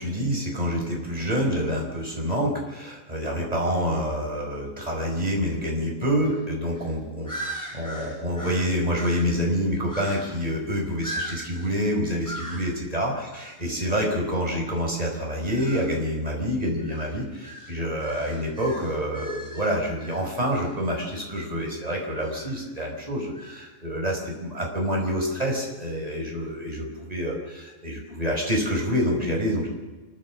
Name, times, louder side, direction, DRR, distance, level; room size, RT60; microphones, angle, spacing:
voice 1, 0.0-29.7, equal, 25° right, -1 dB, 5.2 m, -27 dB
sound 1, 6.2-6.4 6.7-6.9 7.3-9.4 9.9-10.5 11.0-11.8 12.2-12.7 13.3-13.6 15.4-16.0 16.8-20.8 22.2-22.6 23.3-23.7, equal, 15° left, 4.8 m, -39 dB
28.5 x 12.5 x 7.4 m, 1.2 s
omnidirectional pair, 1.4 m